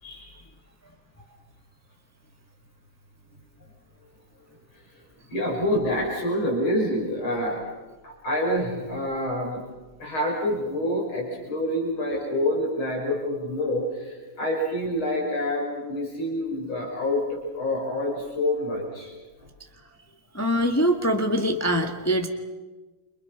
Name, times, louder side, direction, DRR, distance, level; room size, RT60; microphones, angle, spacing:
voice 1, 5.3-7.6 8.0-9.6 10.0-19.1, left 1 dB, 75° left, -1 dB, 6.7 m, -27 dB
voice 2, 20.3-22.3, equal, 10° left, 4 dB, 1.6 m, -23 dB
29.5 x 27.5 x 6.0 m, 1.2 s
omnidirectional pair, 2.3 m